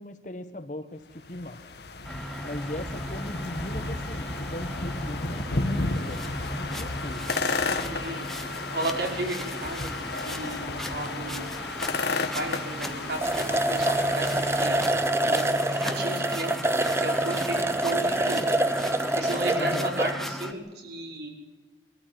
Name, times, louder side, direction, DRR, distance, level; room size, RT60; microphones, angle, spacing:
voice 1, 0.0-1.6 2.4-7.3 19.5-19.9, left 1 dB, 45° left, 9 dB, 1.4 m, -38 dB
sound 1, 1.1-15.2, left 3 dB, 70° left, 1.7 m, -33 dB
sound 2, 2.0-20.5, equal, ahead, 1.2 m, -36 dB
voice 2, 7.9-8.2 8.6-9.9 10.2-11.5 12.1-14.9 15.2-16.5 17.0-18.5 19.1-21.3, right 1 dB, 70° right, 1 dB, 5.3 m, -34 dB
sound 3, 12.8-12.9 13.1-20.1, right 1 dB, 15° right, 0.7 m, -26 dB
23.0 x 14.0 x 9.5 m, 1.2 s
head